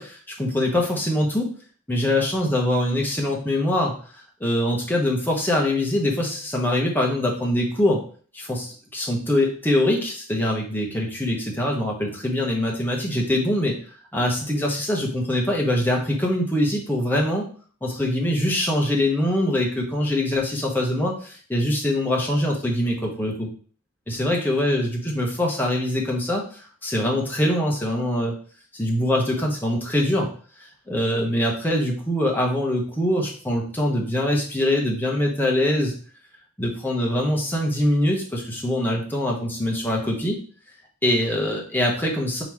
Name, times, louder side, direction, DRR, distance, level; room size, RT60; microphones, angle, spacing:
voice 1, 0.0-1.5 1.9-3.9 4.4-8.0 8.3-13.8 14.1-17.4 17.8-23.5 24.1-28.3 28.7-30.3 30.9-35.9 36.6-40.4 41.0-42.4, left 1 dB, 10° left, -1 dB, 0.9 m, -23 dB
3.8 x 3.0 x 4.6 m, 0.43 s
head